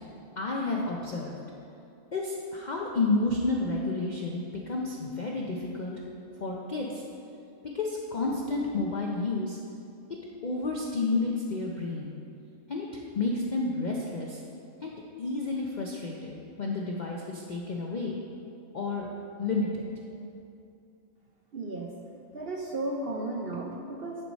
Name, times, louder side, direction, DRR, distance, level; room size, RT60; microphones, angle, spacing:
voice 1, 0.4-1.3 2.1-6.0 6.4-7.0 7.7-9.6 10.4-12.1 12.7-14.4 14.8-14.9 15.2-18.2 18.7-19.1 19.4-19.8, left 3 dB, 55° left, -2 dB, 0.5 m, -30 dB
voice 2, 21.5-21.9 22.3-24.2, right 2 dB, 55° right, -1 dB, 0.6 m, -34 dB
10.5 x 4.7 x 4.1 m, 2.6 s
omnidirectional pair, 1.5 m